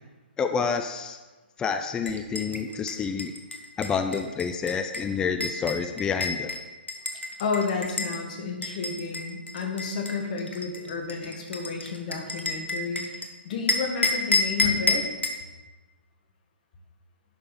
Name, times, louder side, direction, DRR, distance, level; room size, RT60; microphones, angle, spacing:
voice 1, 0.4-1.2 1.6-3.3 3.8-6.6, left 6 dB, 10° left, 8 dB, 0.4 m, -28 dB
sound 1, 2.0-8.2 8.6-13.3 13.7-15.4, left 2 dB, 80° left, 1.2 m, -30 dB
voice 2, 7.4-15.0, left 5 dB, 45° left, 3 dB, 1.7 m, -31 dB
11.0 x 5.5 x 4.1 m, 1.2 s
figure-of-eight pair, 125°, 6 cm